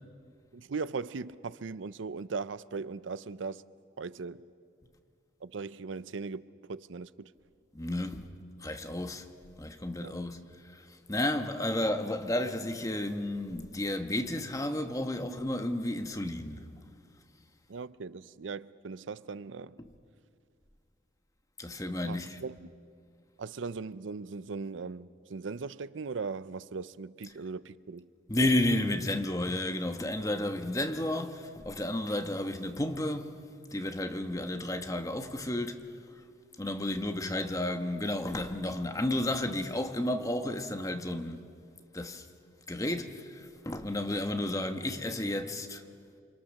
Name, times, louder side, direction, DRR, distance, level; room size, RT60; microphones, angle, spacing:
voice 1, 0.5-3.6 4.0-4.4 5.4-7.3 10.0-10.1 17.7-19.8 22.0-22.5 23.4-28.1, right 4 dB, 85° right, 0.6 m, -39 dB
voice 2, 7.7-8.3 8.6-9.3 9.6-10.4 10.7-16.7 19.8-19.9 21.6-22.4 28.3-33.3 33.7-35.9 36.6-41.5 41.9-42.3 42.7-45.8, left 1 dB, 20° left, 1.1 m, -32 dB
28.5 x 25.5 x 6.5 m
head